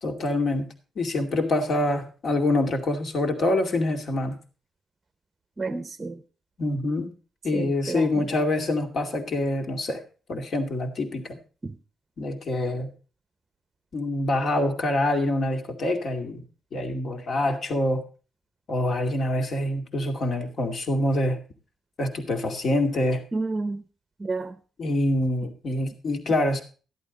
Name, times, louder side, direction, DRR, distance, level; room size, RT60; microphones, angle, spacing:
voice 1, 0.0-4.4 6.6-7.1 7.4-10.0 10.3-11.4 12.2-12.9 13.9-16.4 16.7-18.0 18.7-21.4 22.0-23.2 24.8-26.6, left 1 dB, 45° left, 2.4 m, -25 dB
voice 2, 5.6-6.2 7.5-8.0 11.6-11.7 23.3-23.8 24.2-24.5, right 3 dB, 20° right, 0.9 m, -30 dB
13.5 x 11.5 x 4.0 m
wide cardioid pair, 165°, 0 cm